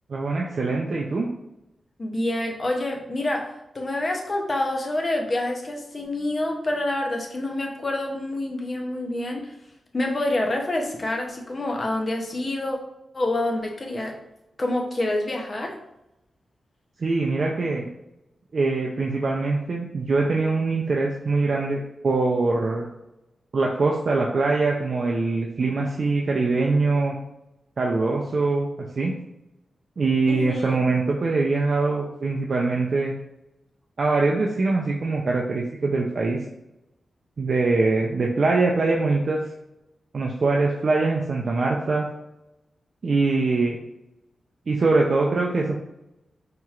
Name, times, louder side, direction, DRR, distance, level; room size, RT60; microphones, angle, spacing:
voice 1, 0.1-1.3 17.0-17.9 18.5-22.9 23.5-27.1 27.8-28.7 29.0-29.1 30.0-33.1 34.0-36.4 37.4-39.4 40.1-42.1 43.0-43.8 44.7-45.8, right 3 dB, 50° right, -1 dB, 0.4 m, -23 dB
voice 2, 2.0-9.5 9.9-12.8 13.1-14.2 14.6-15.8 30.3-30.8, left 1 dB, 30° left, 1 dB, 0.6 m, -27 dB
4.4 x 2.8 x 2.4 m, 0.89 s
wide cardioid pair, 135°, 0 cm